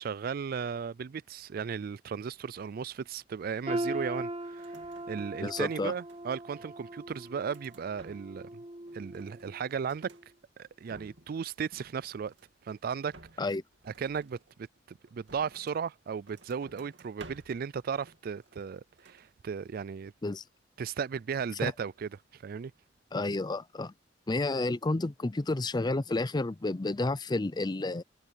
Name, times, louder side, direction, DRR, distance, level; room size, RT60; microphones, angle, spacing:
voice 1, 0.0-4.8 5.1-8.6 8.9-10.1 10.6-12.3 12.6-13.1 13.9-20.1 20.8-22.7, right 6 dB, 55° right, 0.4 m, -36 dB
sound 1, 3.7-9.6 10.0-10.2 11.0-11.1, right 1 dB, 35° right, 1.8 m, -39 dB
sound 2, 4.5-5.5 5.8-6.6 7.0-8.5 8.8-10.3 10.7-11.4 11.7-12.6 13.1-15.9 16.2-17.7 18.0-18.7 19.0-19.3, right 3 dB, 75° right, 2.5 m, -55 dB
voice 2, 5.4-5.9 13.4-13.6 20.2-20.4 21.6-21.7 23.1-23.9 24.3-28.0, left 2 dB, 25° left, 0.5 m, -30 dB
head